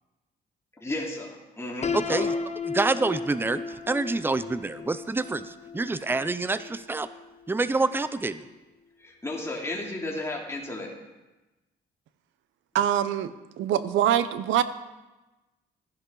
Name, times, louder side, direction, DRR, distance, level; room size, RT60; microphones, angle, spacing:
voice 1, 0.8-2.3 9.0-10.9, left 2 dB, 15° left, -2 dB, 2.9 m, -33 dB
Piano, 1.8-7.7, left 5 dB, 35° left, 0.8 m, -35 dB
voice 2, 1.9-2.3 2.7-7.1 7.5-8.5, right 3 dB, 10° right, 14 dB, 0.5 m, -27 dB
voice 3, 12.7-13.3 13.6-14.6, right 10 dB, 80° right, 13 dB, 0.7 m, -23 dB
14.5 x 10.5 x 3.9 m, 1.1 s
cardioid pair, 90°, 20 cm